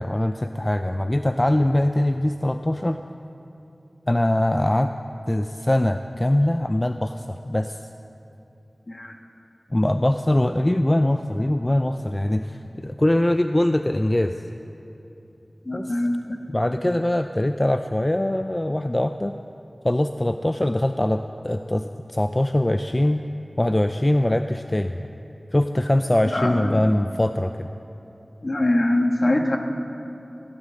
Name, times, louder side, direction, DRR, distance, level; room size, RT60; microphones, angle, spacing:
voice 1, 0.0-3.0 4.1-4.9 5.3-7.8 9.7-14.3 15.7-16.0 16.5-19.3 19.8-23.2 23.6-25.1 25.5-27.7, left 1 dB, 25° left, 8 dB, 0.4 m, -22 dB
voice 2, 15.6-16.2 26.3-26.8 28.4-29.6, left 1 dB, 50° left, 3 dB, 1.5 m, -22 dB
16.5 x 9.7 x 7.6 m, 2.9 s
wide cardioid pair, 60°, 0 cm